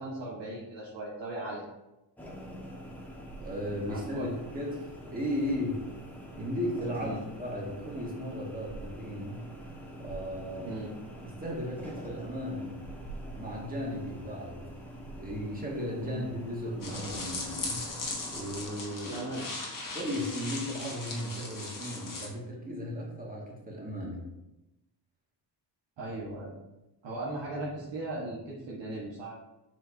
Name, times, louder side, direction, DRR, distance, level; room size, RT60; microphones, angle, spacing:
voice 1, 0.0-1.7 3.9-4.3 7.0-7.2 10.6-11.0 16.0-16.2 19.1-19.5 26.0-26.5 27.0-29.4, right 2 dB, 70° right, -6 dB, 1.5 m, -38 dB
sound 1, 2.2-18.7, right 1 dB, 5° left, 1.4 m, -45 dB
voice 2, 3.4-4.3 4.5-5.8 6.4-9.5 10.0-10.7 11.2-12.8 13.4-14.6 15.2-17.9 18.3-19.2 19.9-24.3, equal, 20° right, -3 dB, 1.9 m, -36 dB
sound 2, 16.8-22.3, left 3 dB, 45° left, 1.3 m, -38 dB
7.5 x 4.7 x 2.7 m, 0.97 s
cardioid pair, 95°, 45 cm